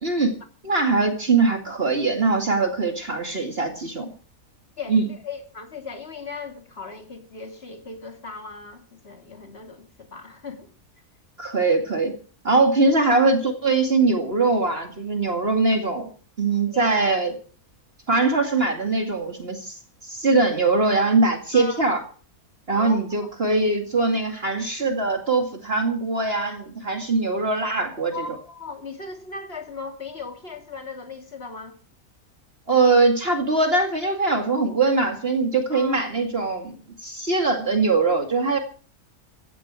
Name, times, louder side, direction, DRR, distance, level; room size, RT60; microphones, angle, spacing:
voice 1, 0.0-0.4 0.6-4.1 4.9-5.0 11.4-12.1 12.4-16.1 16.4-17.3 18.1-22.0 22.7-28.1 32.7-38.6, right 3 dB, 45° right, 2.4 m, -22 dB
voice 2, 4.8-10.7 16.7-16.9 21.5-21.8 22.7-23.3 28.1-31.8 35.7-36.1, left 4 dB, 45° left, 3.0 m, -37 dB
16.0 x 12.0 x 6.1 m
omnidirectional pair, 1.5 m